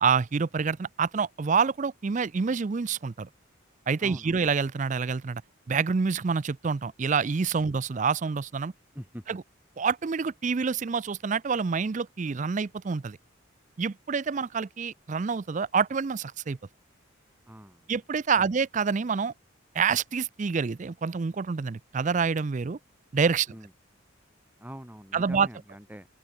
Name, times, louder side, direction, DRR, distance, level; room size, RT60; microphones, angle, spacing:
voice 1, 0.0-3.3 3.9-5.4 5.7-8.7 9.3-9.4 9.8-13.2 13.8-16.6 17.9-19.3 19.7-22.8 23.1-23.5 25.1-25.5, right 5 dB, 35° right, 0.4 m, -27 dB
voice 2, 4.0-4.4 8.9-9.4 17.5-17.9 18.3-18.5 23.5-23.7 24.6-26.1, equal, 10° right, 6.6 m, -44 dB
open air
head